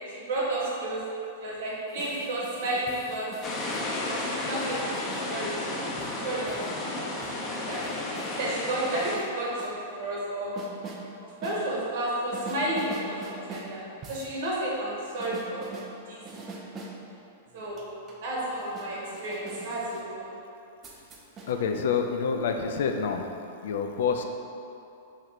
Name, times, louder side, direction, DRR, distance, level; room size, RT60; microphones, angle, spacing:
voice 1, 0.1-1.0 1.4-3.3 4.1-7.0 7.3-7.8 8.4-10.5 11.4-13.8 14.1-15.7 16.1-16.2 17.5-17.8 18.2-20.3, right 1 dB, 65° right, -5 dB, 1.2 m, -32 dB
sound 1, 1.9-3.8 4.6-5.3 6.0-6.7 7.2-8.3 8.8-9.7 10.6-11.0 11.4-11.6 12.3-13.7 14.0-14.3 15.2-15.9 16.3-17.0 17.5-20.1 20.8-21.5, right 3 dB, 30° right, 0.5 m, -43 dB
sound 2, 3.4-9.2, left 2 dB, 25° left, 0.6 m, -33 dB
voice 2, 21.5-23.3 23.6-24.2, left 6 dB, 70° left, 5 dB, 0.3 m, -27 dB
3.1 x 3.1 x 4.0 m, 2.7 s
hypercardioid pair, 120°, 0 cm